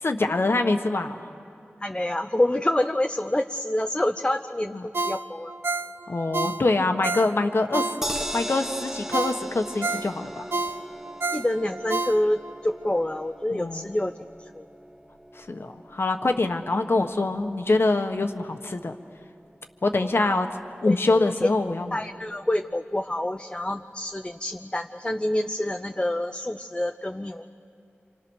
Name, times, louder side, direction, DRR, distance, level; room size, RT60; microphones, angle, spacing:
voice 1, 0.0-1.3 4.7-4.9 6.1-7.9 8.3-10.4 13.5-13.9 15.3-19.0 19.8-20.5 20.8-22.0, left 2 dB, 65° left, 6 dB, 1.4 m, -24 dB
voice 2, 1.8-5.5 11.3-14.1 14.5-14.7 20.0-20.4 20.9-21.3 21.9-27.5, left 1 dB, 20° left, 5 dB, 0.7 m, -27 dB
Ringtone, 4.9-8.4 8.8-8.9 9.1-12.6 13.0-13.1, right 3 dB, 60° right, 0.7 m, -30 dB
sound 1, 8.0-20.2 20.6-20.7 21.0-21.1, equal, 10° right, 1.2 m, -39 dB
28.5 x 27.0 x 6.4 m, 2.5 s
wide cardioid pair, 60°, 4 cm